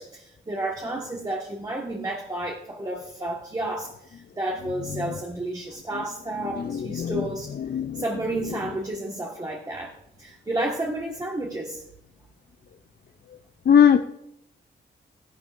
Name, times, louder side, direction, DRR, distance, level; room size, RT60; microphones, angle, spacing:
voice 1, 0.0-7.5 7.9-11.8, right 1 dB, 20° right, -1 dB, 1.5 m, -31 dB
voice 2, 6.6-7.3 7.7-8.0 8.5-8.6 13.7-14.0, left 8 dB, 55° left, 8 dB, 0.5 m, -20 dB
15.0 x 11.5 x 2.5 m, 0.80 s
wide cardioid pair, 125°, 20 cm